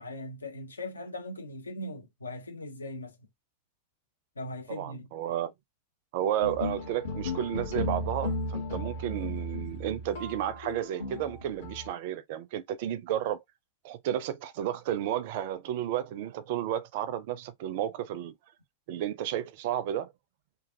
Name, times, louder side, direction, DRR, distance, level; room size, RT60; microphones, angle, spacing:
voice 1, 0.0-3.2 4.4-5.1, left 1 dB, 75° left, 0.7 m, -39 dB
voice 2, 4.7-5.5 6.1-13.4 13.8-18.3 18.9-20.1, right 11 dB, 50° right, 0.4 m, -32 dB
sound 1, 6.4-11.9, left 1 dB, 60° left, 1.3 m, -35 dB
3.1 x 2.3 x 2.7 m
figure-of-eight pair, 90°, 0 cm